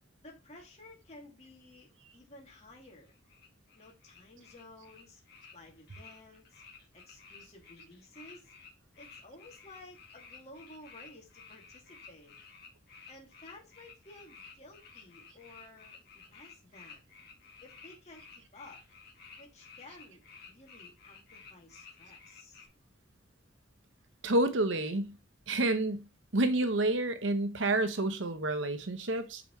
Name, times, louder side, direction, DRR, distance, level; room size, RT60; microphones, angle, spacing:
voice 1, 0.2-3.1 3.7-5.2 5.5-6.6 6.9-8.5 9.0-12.4 13.1-17.1 17.6-18.8 19.4-20.2 20.5-22.6, left 2 dB, 30° left, 2.5 m, -54 dB
sound 1, 2.8-22.7, left 5 dB, 50° left, 2.0 m, -54 dB
voice 2, 24.2-25.1 25.5-26.0 26.3-29.4, right 2 dB, 65° right, 1.0 m, -29 dB
8.9 x 4.9 x 3.2 m
head